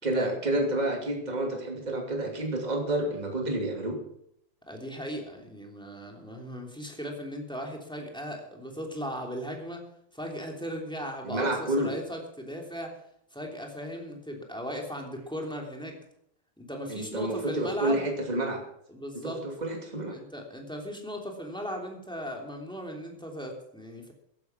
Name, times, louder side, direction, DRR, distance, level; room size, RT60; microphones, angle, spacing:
voice 1, 0.0-4.0 11.2-11.9 16.9-18.6 19.2-20.1, right 1 dB, 20° right, 1 dB, 2.8 m, -29 dB
voice 2, 4.7-9.9 10.1-13.0 13.3-16.0 16.6-18.0 18.9-19.5 20.1-24.1, equal, ahead, 1 dB, 3.0 m, -37 dB
15.0 x 12.0 x 5.9 m, 0.72 s
omnidirectional pair, 2.4 m